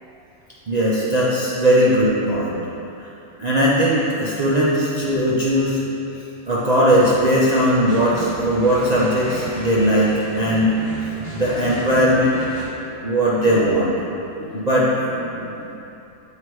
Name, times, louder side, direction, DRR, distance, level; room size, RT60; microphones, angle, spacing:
voice 1, 0.7-2.6 3.0-3.1 3.4-5.8 6.5-10.8 11.3-12.5 13.0-13.9 14.5-14.9, equal, 50° right, -8 dB, 0.5 m, -18 dB
sound 1, 6.9-12.6, right 1 dB, 25° right, 1.0 m, -35 dB
voice 2, 12.8-13.9 14.4-15.8, left 1 dB, 65° left, -1 dB, 0.8 m, -37 dB
7.8 x 2.8 x 4.6 m, 2.8 s
omnidirectional pair, 1.5 m